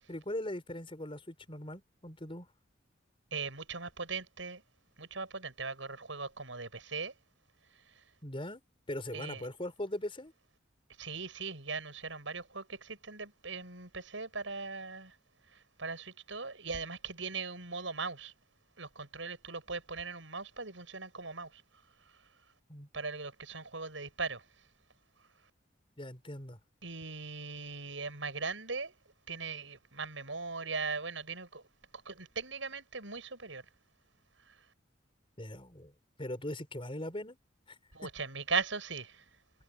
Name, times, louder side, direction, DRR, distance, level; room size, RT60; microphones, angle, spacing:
voice 1, 0.0-2.5 8.2-8.6 8.9-10.3 22.7-22.9 26.0-26.6 35.4-35.9 36.2-37.4 37.7-37.8, left 1 dB, 30° left, 4.9 m, -40 dB
voice 2, 3.3-4.6 5.0-7.1 7.7-8.0 9.1-9.5 11.0-15.2 15.5-18.3 18.8-21.6 22.0-22.3 22.9-24.5 26.8-28.9 29.3-31.6 32.1-33.6 34.4-34.7 37.9-39.3, right 4 dB, 85° right, 7.0 m, -39 dB
head